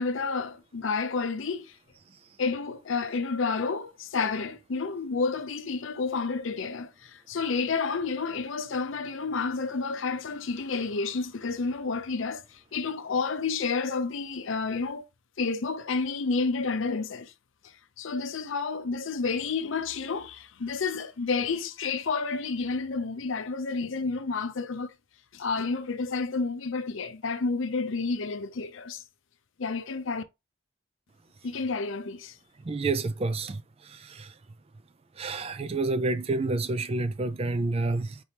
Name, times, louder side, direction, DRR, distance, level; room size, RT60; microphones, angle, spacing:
voice 1, 0.0-1.8 2.4-15.1 15.4-17.3 18.0-24.9 25.3-29.0 29.6-30.2 31.4-32.3, left 4 dB, 65° left, 0.6 m, -30 dB
voice 2, 32.7-33.6 33.8-34.3 35.2-38.2, right 3 dB, 30° right, 0.3 m, -29 dB
4.5 x 3.3 x 2.8 m
head